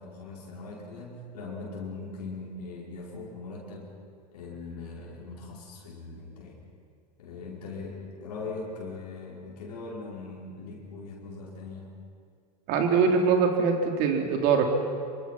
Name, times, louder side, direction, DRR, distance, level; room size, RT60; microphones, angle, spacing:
voice 1, 0.0-3.9 4.3-6.6 7.2-11.9, left 3 dB, 70° left, -3 dB, 5.2 m, -40 dB
voice 2, 12.7-14.6, right 5 dB, 50° right, 3 dB, 3.8 m, -23 dB
25.0 x 25.0 x 6.0 m, 2.2 s
hypercardioid pair, 95°, 21 cm